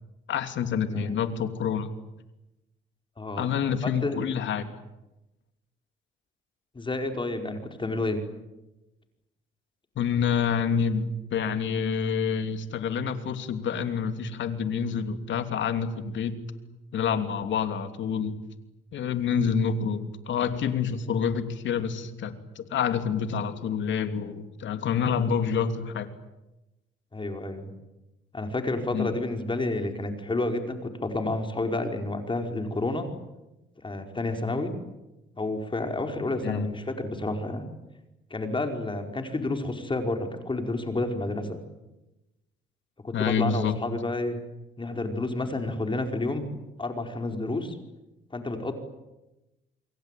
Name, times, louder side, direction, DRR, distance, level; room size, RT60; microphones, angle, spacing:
voice 1, 0.3-1.9 3.4-4.7 9.9-16.4 16.9-18.4 18.9-26.1 28.9-29.1 36.4-36.7 43.1-43.7, left 7 dB, 70° left, 8 dB, 3.0 m, -27 dB
voice 2, 3.2-3.5 3.8-4.2 6.7-8.2 27.1-27.7 28.3-33.1 33.8-34.7 35.4-37.7 38.3-41.6 43.0-44.4 44.8-46.5 46.8-47.8 48.3-48.7, left 2 dB, 25° left, 5 dB, 5.0 m, -30 dB
28.0 x 23.0 x 9.3 m, 0.98 s
cardioid pair, 90°, 20 cm